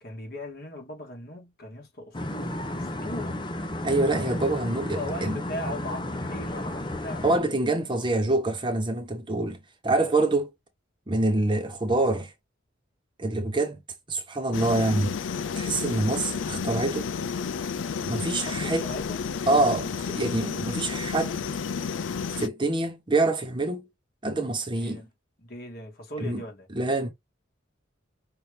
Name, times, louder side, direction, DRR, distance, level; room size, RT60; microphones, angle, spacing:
voice 1, 0.0-3.6 4.1-4.4 4.9-7.2 18.4-19.2 24.8-25.1 25.4-26.7, left 1 dB, 50° left, 1.8 m, -39 dB
sound 1, 2.1-7.4, left 1 dB, 25° left, 0.8 m, -33 dB
voice 2, 3.8-5.4 7.2-9.6 9.8-10.5 11.1-12.3 13.2-13.8 14.1-15.1 15.6-17.1 18.0-18.9 19.5-21.4 22.4-23.9 24.2-25.0 26.2-26.4 26.7-27.1, right 2 dB, 25° right, 0.8 m, -26 dB
sound 2, 14.5-22.5, left 6 dB, 85° left, 0.4 m, -31 dB
5.7 x 2.6 x 3.3 m
head